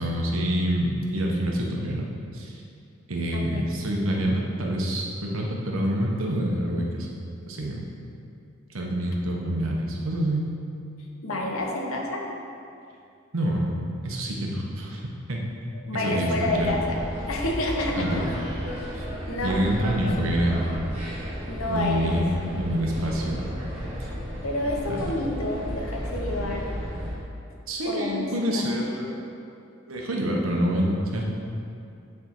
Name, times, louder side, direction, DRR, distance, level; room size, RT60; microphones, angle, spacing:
voice 1, 0.0-2.0 2.3-2.5 3.1-7.1 7.5-7.8 8.7-10.4 13.3-13.7 14.0-15.0 15.3-15.4 15.9-16.7 18.0-18.2 18.9-19.1 19.4-20.8 21.7-22.3 22.5-23.4 24.9-25.2 27.7-29.1 29.9-31.2, equal, 85° right, -1 dB, 1.0 m, -26 dB
voice 2, 3.3-3.7 11.2-12.2 15.8-17.0 17.3-18.3 19.3-20.2 21.5-22.2 24.4-26.7 27.8-28.7, left 1 dB, 90° left, 0 dB, 1.0 m, -29 dB
sound 1, 16.5-27.2, equal, 30° right, 1.8 m, -34 dB
9.6 x 3.6 x 4.5 m, 2.5 s
head